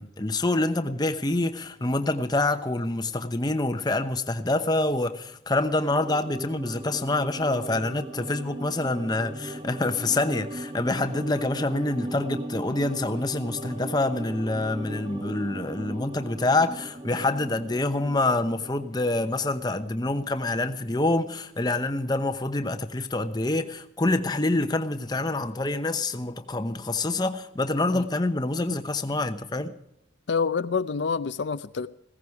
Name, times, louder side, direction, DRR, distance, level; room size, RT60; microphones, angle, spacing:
voice 1, 0.0-29.7, left 2 dB, 20° left, 0.8 m, -26 dB
sound 1, 5.9-20.4 20.7-20.8, right 1 dB, 25° right, 1.0 m, -38 dB
voice 2, 30.3-31.9, left 5 dB, 70° left, 0.5 m, -27 dB
16.0 x 15.0 x 4.7 m
head